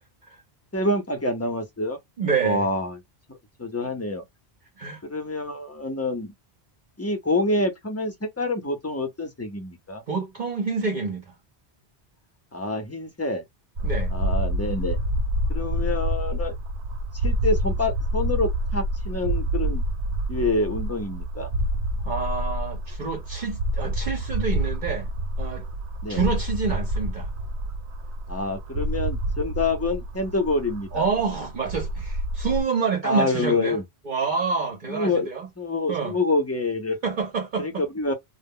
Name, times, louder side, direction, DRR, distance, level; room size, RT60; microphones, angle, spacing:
voice 1, 0.7-2.0 2.4-3.0 3.3-4.2 5.0-6.3 7.0-10.0 12.5-13.4 14.1-15.0 15.5-16.5 17.1-19.8 20.3-21.5 26.0-26.2 28.3-31.0 33.0-33.8 34.9-35.3 35.6-37.0 37.6-38.1, left 2 dB, 20° left, 0.5 m, -27 dB
voice 2, 2.2-2.7 4.8-5.0 10.1-11.3 13.8-14.1 22.0-25.1 25.4-25.7 26.1-27.3 30.9-33.8 34.1-35.5 35.9-36.2 37.0-37.8, right 5 dB, 50° right, 0.7 m, -27 dB
sound 1, 13.8-32.6, right 1 dB, 85° right, 0.9 m, -28 dB
2.0 x 2.0 x 3.6 m
omnidirectional pair, 1.1 m